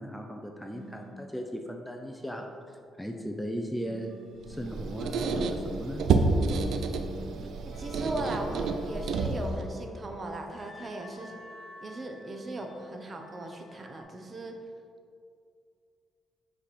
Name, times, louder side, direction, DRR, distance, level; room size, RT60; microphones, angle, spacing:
voice 1, 0.0-4.1 4.5-6.0 7.4-7.5, equal, 5° left, 3 dB, 0.5 m, -37 dB
sound 1, 0.7-1.3 3.8-4.8 6.4-7.4, right 1 dB, 55° right, 1.4 m, -47 dB
Squeak, 4.4-9.7, right 4 dB, 70° right, 0.5 m, -29 dB
voice 2, 7.6-11.4 11.8-14.5, right 1 dB, 35° right, 4 dB, 0.8 m, -38 dB
sound 2, 7.7-14.0, left 1 dB, 50° left, 1.2 m, -52 dB
7.5 x 3.5 x 4.2 m, 2.4 s
cardioid pair, 90°, 0 cm